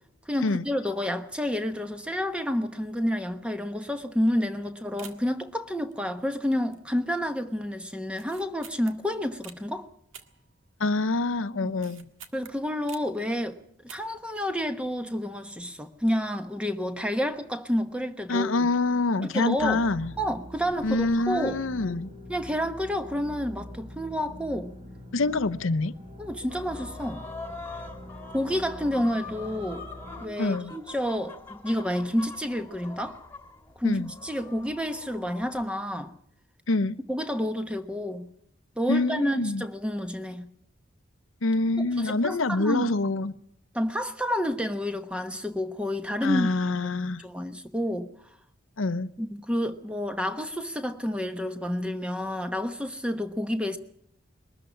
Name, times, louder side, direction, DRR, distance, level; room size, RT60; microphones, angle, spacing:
voice 1, 0.3-9.9 11.6-11.7 12.3-13.6 13.8-18.7 19.2-19.8 20.2-21.6 22.3-24.7 26.2-27.2 28.3-29.9 30.2-33.2 33.8-36.1 37.1-38.3 38.8-40.5 41.8-43.0 43.7-46.5 47.2-48.1 49.2-53.8, equal, 5° right, 1.1 m, -29 dB
sound 1, 5.0-5.4 5.9-6.4 6.7-7.1 7.4-7.5 8.1-9.6 10.1-11.0 11.4-13.2 13.7-14.3 14.5-14.6, right 8 dB, 90° right, 1.7 m, -49 dB
voice 2, 10.8-12.0 18.3-20.1 20.8-22.1 25.1-25.9 30.4-30.7 33.8-34.1 36.7-37.0 38.9-39.6 41.4-43.3 46.2-47.2 48.8-49.1, left 2 dB, 90° left, 0.8 m, -26 dB
sound 2, 19.6-30.2, left 1 dB, 30° right, 5.0 m, -44 dB
sound 3, 26.5-35.6, left 3 dB, 10° left, 2.0 m, -44 dB
21.5 x 13.5 x 9.7 m
head